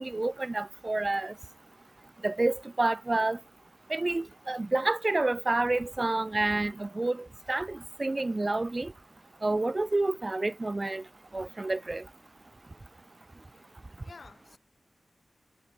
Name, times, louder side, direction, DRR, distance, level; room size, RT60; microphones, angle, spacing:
voice 1, 0.0-1.3 2.2-3.4 3.9-7.2 7.5-8.9 9.4-11.0 11.3-12.0, right 2 dB, 30° right, 0.6 m, -29 dB
voice 2, 13.4-13.8 14.0-14.6, left 4 dB, 60° left, 3.2 m, -52 dB
wide cardioid pair, 105°, 0 cm